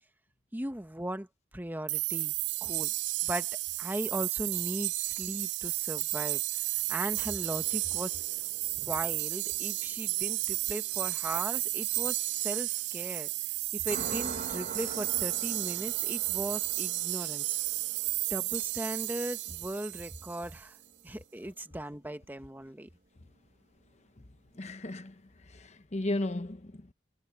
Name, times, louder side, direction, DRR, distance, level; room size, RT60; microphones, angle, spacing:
voice 1, 0.5-1.3 1.5-2.3 2.6-2.9 3.2-3.5 3.8-6.4 6.9-8.2 8.8-13.3 13.7-17.6 18.3-20.8 21.0-22.9, right 1 dB, 10° right, 1.3 m, -38 dB
sound 1, 1.9-20.6, right 18 dB, 85° right, 0.4 m, -33 dB
sound 2, 7.1-13.5 13.8-21.6, right 3 dB, 55° right, 1.2 m, -47 dB
voice 2, 24.5-26.9, left 1 dB, 40° left, 1.0 m, -36 dB
head